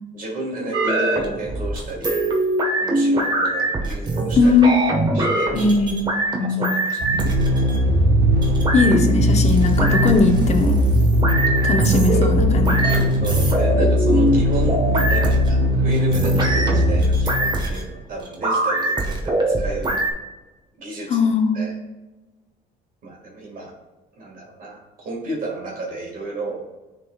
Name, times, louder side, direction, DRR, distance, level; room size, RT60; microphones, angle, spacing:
voice 1, 0.1-2.1 2.8-4.5 5.1-5.5 6.5-7.3 11.6-11.7 12.1-12.3 13.2-20.0 20.8-21.3 21.5-21.7 23.0-23.7 24.2-26.6, right 2 dB, 55° right, -2 dB, 2.0 m, -32 dB
sound 1, 0.7-20.1, right 2 dB, 25° right, 1.3 m, -22 dB
voice 2, 4.4-4.8 5.5-6.0 8.7-10.8 11.6-12.9 21.1-21.6, left 3 dB, 40° left, 5 dB, 0.9 m, -18 dB
sound 2, 7.0-17.7, left 1 dB, 90° right, 0.8 m, -20 dB
11.0 x 3.7 x 2.4 m, 1.1 s
cardioid pair, 110°, 17 cm